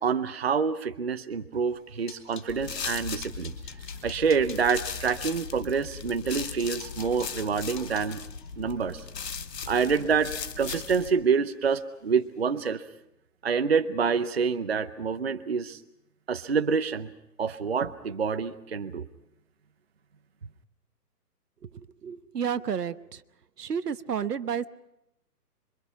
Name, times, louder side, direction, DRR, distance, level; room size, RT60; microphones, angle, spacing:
voice 1, 0.0-3.5 4.0-8.2 8.6-9.1 9.7-12.8 13.4-15.8 16.3-17.1 17.4-19.1, right 6 dB, 40° right, 9 dB, 0.7 m, -27 dB
sound 1, 1.6-2.5 2.9-5.4 6.0-6.1 6.4-10.6 10.9-11.3 11.6-11.8 12.2-12.4, left 7 dB, 30° left, 4.3 m, -48 dB
sound 2, 2.5-11.1, left 6 dB, 80° left, 1.6 m, -38 dB
voice 2, 21.6-23.2 23.6-24.7, right 7 dB, 75° right, 14 dB, 1.1 m, -31 dB
26.5 x 24.0 x 5.7 m, 0.86 s
hypercardioid pair, 175°, 48 cm